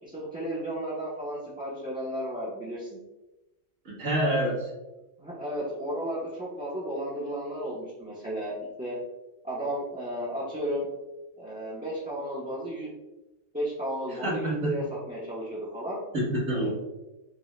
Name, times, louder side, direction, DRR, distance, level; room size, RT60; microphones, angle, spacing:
voice 1, 0.0-2.9 5.2-9.0 9.4-10.9 11.4-12.9 13.5-16.0 16.5-16.7, equal, 10° right, -9 dB, 0.6 m, -33 dB
voice 2, 3.9-4.7 14.1-14.7 16.1-16.7, right 1 dB, 85° right, -6 dB, 1.9 m, -27 dB
5.2 x 2.2 x 3.2 m, 1.0 s
omnidirectional pair, 1.3 m